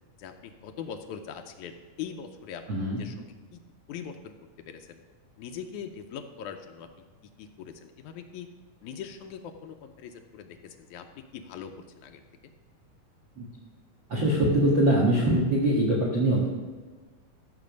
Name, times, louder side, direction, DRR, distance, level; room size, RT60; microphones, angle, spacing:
voice 1, 0.2-2.6 3.0-3.6 3.9-4.4 4.7-5.0 5.4-6.9 7.4-8.5 8.8-12.2, left 8 dB, 75° left, 6 dB, 1.9 m, -41 dB
voice 2, 2.7-3.0 13.4-13.5 14.1-16.5, right 1 dB, 45° right, -4 dB, 1.8 m, -23 dB
14.0 x 6.7 x 5.2 m, 1.4 s
omnidirectional pair, 3.9 m